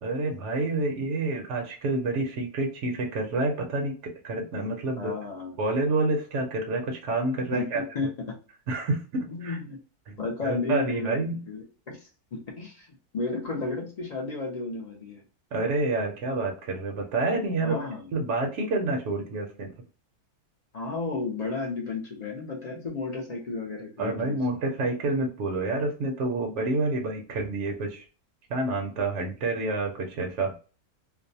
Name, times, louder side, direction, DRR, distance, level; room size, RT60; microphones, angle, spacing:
voice 1, 0.0-5.1 5.6-7.8 8.7-9.6 10.1-10.2 10.4-11.4 15.5-17.8 18.1-19.7 24.0-28.0 28.5-30.6, right 2 dB, 65° right, 2 dB, 0.8 m, -28 dB
voice 2, 5.0-5.6 7.5-8.4 9.3-9.8 10.2-11.2 11.5-12.9 13.1-15.2 17.6-18.0 20.7-24.4, left 3 dB, 50° left, -1 dB, 0.5 m, -33 dB
2.5 x 2.1 x 2.6 m, 0.36 s
omnidirectional pair, 1.5 m